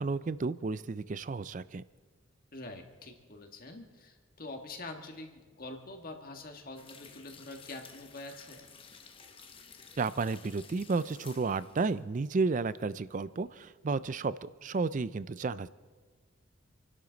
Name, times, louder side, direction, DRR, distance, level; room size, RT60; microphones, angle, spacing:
voice 1, 0.0-1.8 10.0-15.7, right 4 dB, 35° right, 17 dB, 0.4 m, -32 dB
voice 2, 2.5-8.7, left 2 dB, 40° left, 4 dB, 1.7 m, -45 dB
sound 1, 6.8-13.0 13.4-13.5, left 6 dB, 25° left, 0.9 m, -54 dB
27.5 x 12.0 x 4.0 m, 1.4 s
head